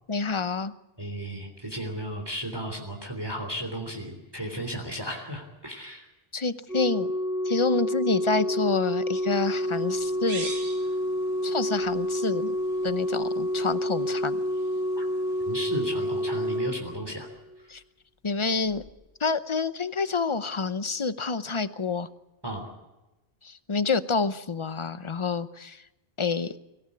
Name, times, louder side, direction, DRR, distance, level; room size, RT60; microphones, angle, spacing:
voice 1, 0.1-0.7 6.3-7.1 7.4-10.5 11.4-12.5 12.8-14.4 17.7-17.8 18.2-18.8 19.2-22.1 23.4-25.8 26.2-26.5, left 4 dB, 30° left, 13 dB, 0.8 m, -28 dB
voice 2, 1.0-6.1 15.0-15.1 15.4-17.3 17.6-17.7 22.4-22.7, right 1 dB, 20° right, 2 dB, 3.4 m, -34 dB
Organ, 6.7-17.6 18.7-18.9, equal, 60° left, 1.8 m, -29 dB
sound 1, 9.3-16.6, right 2 dB, 75° right, 3.3 m, -45 dB
25.0 x 16.5 x 8.4 m, 1.0 s
omnidirectional pair, 1.1 m